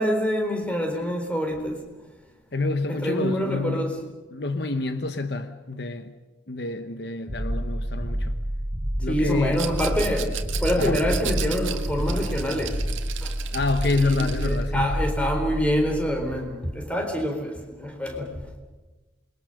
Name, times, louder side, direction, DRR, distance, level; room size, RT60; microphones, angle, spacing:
voice 1, 0.0-1.8 3.0-4.0 9.1-10.3 10.6-12.8 13.2-13.3 14.0-18.4, equal, 5° left, 3.9 m, -26 dB
voice 2, 2.5-3.9 4.3-6.1 6.5-8.3 9.0-9.7 10.8-11.0 13.5-15.0, left 3 dB, 55° left, 1.0 m, -27 dB
sound 1, 7.3-16.4, equal, 20° right, 4.5 m, -29 dB
Rattle, 9.5-14.6, right 11 dB, 90° right, 1.9 m, -36 dB
27.5 x 22.5 x 6.6 m
head